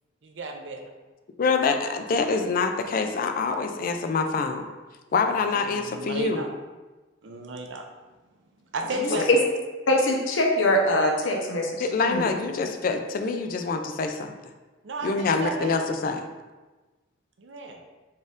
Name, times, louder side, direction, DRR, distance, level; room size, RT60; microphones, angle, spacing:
voice 1, 0.2-0.9 5.4-6.5 7.2-7.9 8.7-9.4 14.8-15.9 17.4-17.8, right 2 dB, 65° right, 3 dB, 0.5 m, -34 dB
voice 2, 1.4-4.7 5.1-6.4 8.9-9.2 11.8-14.3 15.0-16.3, left 4 dB, 45° left, 6 dB, 0.3 m, -26 dB
voice 3, 9.9-12.3, left 1 dB, 85° left, 1 dB, 0.7 m, -22 dB
4.2 x 2.5 x 3.5 m, 1.2 s
head